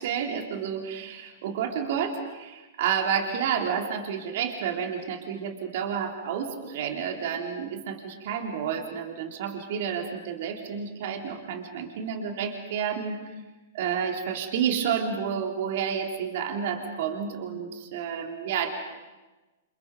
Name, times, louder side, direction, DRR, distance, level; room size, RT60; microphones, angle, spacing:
voice 1, 0.0-13.3 13.7-18.7, right 7 dB, 55° right, 3 dB, 3.8 m, -30 dB
28.5 x 28.5 x 5.3 m, 1.2 s
figure-of-eight pair, 105°, 0 cm